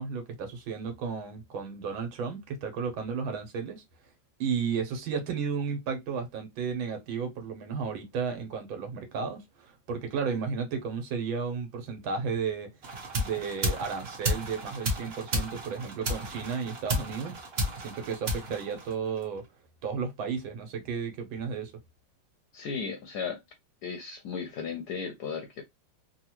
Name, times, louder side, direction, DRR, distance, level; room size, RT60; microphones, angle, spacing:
voice 1, 0.0-3.8 4.4-12.7 13.1-17.3 17.8-19.4 19.8-21.7, right 6 dB, 75° right, 1.7 m, -33 dB
sound 1, 12.8-19.4, equal, 50° right, 0.8 m, -33 dB
voice 2, 22.5-23.4 23.8-25.6, left 6 dB, 70° left, 1.0 m, -35 dB
3.8 x 2.2 x 2.8 m
omnidirectional pair, 2.2 m